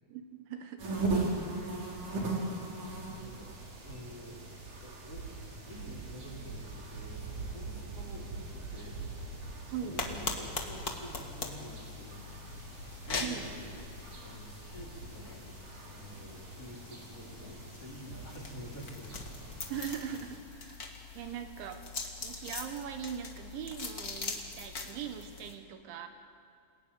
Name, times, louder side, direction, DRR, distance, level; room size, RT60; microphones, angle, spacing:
voice 1, 0.1-1.0 1.5-1.8 9.7-10.0 13.2-13.5 19.7-20.9 21.1-21.8 22.2-26.1, right 8 dB, 75° right, 7 dB, 3.4 m, -41 dB
sound 1, 0.8-20.4, right 2 dB, 40° right, 5.0 m, -40 dB
voice 2, 3.1-4.5 4.8-5.3 5.7-9.4 9.8-12.2 12.6-13.7 14.2-15.5 15.9-19.2 21.0-21.4, equal, 35° left, -2 dB, 3.9 m, -49 dB
sound 2, 10.0-25.5, left 3 dB, 60° left, 0.9 m, -42 dB
29.5 x 20.5 x 9.8 m, 2.5 s
omnidirectional pair, 5.6 m